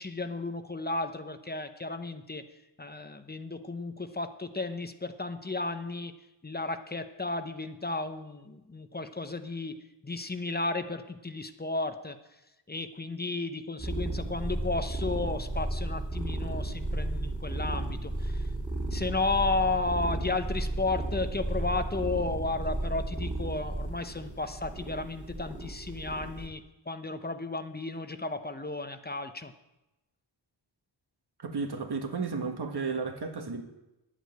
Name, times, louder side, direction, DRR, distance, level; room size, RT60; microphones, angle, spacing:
voice 1, 0.0-2.4 2.8-6.1 6.4-9.8 10.0-12.2 12.7-18.4 18.9-29.5, left 3 dB, 20° left, 9 dB, 0.8 m, -33 dB
sound 1, 13.8-26.5, right 1 dB, 15° right, 2.6 m, -33 dB
voice 2, 31.4-33.6, right 4 dB, 55° right, 4 dB, 1.7 m, -33 dB
11.0 x 8.2 x 7.9 m, 0.96 s
wide cardioid pair, 105°, 46 cm